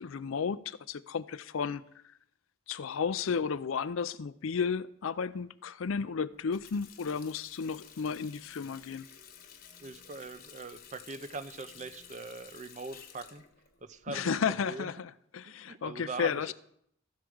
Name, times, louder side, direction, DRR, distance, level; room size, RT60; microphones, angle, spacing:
voice 1, 0.0-1.8 2.7-9.1 14.1-16.5, left 6 dB, 75° left, 0.5 m, -33 dB
Water tap faucet, 6.3-14.8, left 8 dB, 45° left, 1.1 m, -53 dB
voice 2, 9.8-13.4 13.8-14.9 15.4-16.5, right 3 dB, 35° right, 0.5 m, -42 dB
14.0 x 4.7 x 6.3 m
head